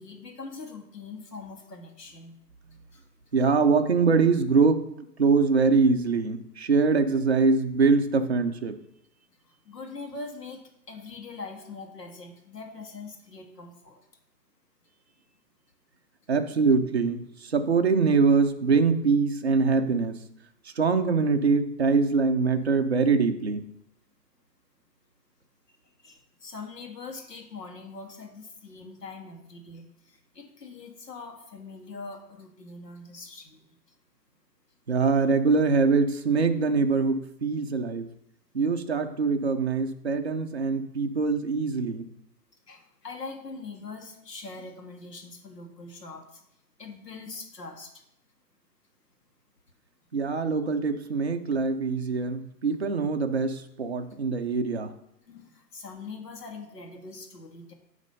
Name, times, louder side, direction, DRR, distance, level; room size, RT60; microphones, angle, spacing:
voice 1, 0.0-2.4 2.9-3.0 9.4-10.6 10.9-14.0 26.0-33.8 42.7-46.4 46.8-48.0 55.3-57.7, left 3 dB, 75° left, 2 dB, 1.7 m, -42 dB
voice 2, 3.3-4.8 5.2-8.7 16.3-20.2 20.8-23.6 34.9-38.1 38.5-42.1 50.1-54.9, right 4 dB, 40° right, 5 dB, 0.5 m, -23 dB
9.1 x 3.3 x 5.3 m, 0.78 s
hypercardioid pair, 160°, 50 cm